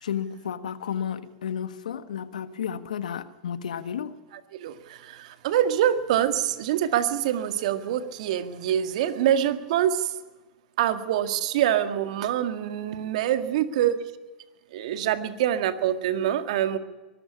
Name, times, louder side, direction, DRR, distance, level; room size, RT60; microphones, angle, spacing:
voice 1, 0.0-4.1, left 8 dB, 80° left, 12 dB, 1.5 m, -32 dB
voice 2, 4.5-10.1 10.8-14.0 14.7-16.8, right 11 dB, 65° right, 10 dB, 1.9 m, -25 dB
23.0 x 13.0 x 9.9 m, 1.2 s
hypercardioid pair, 105°, 4 cm